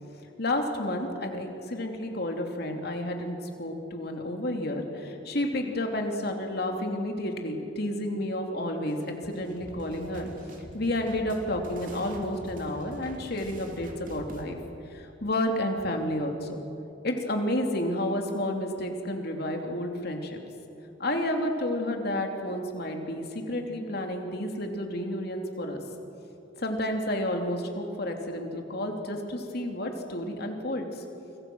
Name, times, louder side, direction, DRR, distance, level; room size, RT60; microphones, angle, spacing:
voice 1, 0.4-10.3 10.7-14.6 14.9-16.6 17.0-20.4 21.0-25.8 26.6-31.0, left 1 dB, 55° left, 3 dB, 3.0 m, -31 dB
sound 1, 8.9-14.4, equal, 45° right, 2.9 m, -45 dB
29.5 x 24.5 x 6.3 m, 2.8 s
head